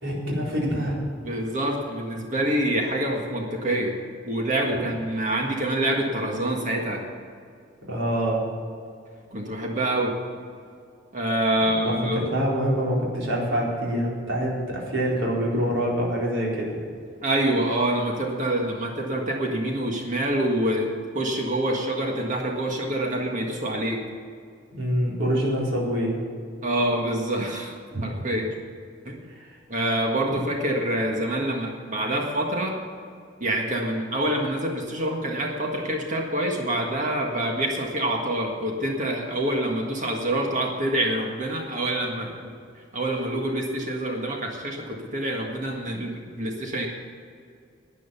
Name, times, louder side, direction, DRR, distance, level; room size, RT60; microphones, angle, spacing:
voice 1, 0.0-1.0 7.9-8.4 11.7-16.8 24.7-26.2 29.3-29.4, equal, 75° right, -4 dB, 4.2 m, -25 dB
voice 2, 1.2-4.0 4.3-7.1 9.3-10.1 11.1-12.3 17.2-20.9 21.1-24.0 26.6-27.7 28.0-28.5 29.1-29.2 29.7-32.8 33.4-42.3 42.9-46.9, right 1 dB, 40° right, 1 dB, 1.7 m, -26 dB
12.5 x 9.2 x 7.1 m, 2.3 s
head